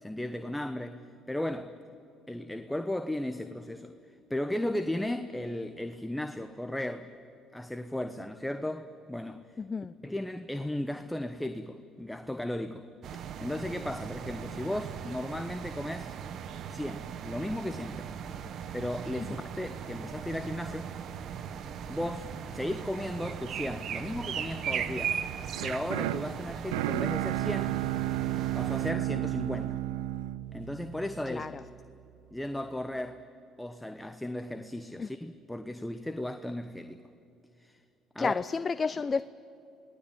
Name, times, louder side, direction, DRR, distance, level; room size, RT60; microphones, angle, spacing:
voice 1, 0.0-1.7 2.3-3.9 4.3-7.1 7.5-9.6 10.0-12.9 13.1-16.1 16.7-18.1 18.7-21.0 21.3-21.4 21.9-25.2 25.6-27.8 28.5-29.8 30.5-31.4 32.3-33.2 33.6-37.0 37.6-37.8 38.1-38.3, left 1 dB, 5° left, 1.1 m, -35 dB
voice 2, 9.6-9.9 31.3-31.6 35.0-35.1 38.2-39.2, left 5 dB, 35° left, 0.6 m, -31 dB
sound 1, 13.0-28.9, right 8 dB, 60° right, 1.4 m, -38 dB
sound 2, 25.5-31.6, right 15 dB, 85° right, 0.6 m, -32 dB
28.5 x 19.0 x 9.2 m
hypercardioid pair, 65°, 0 cm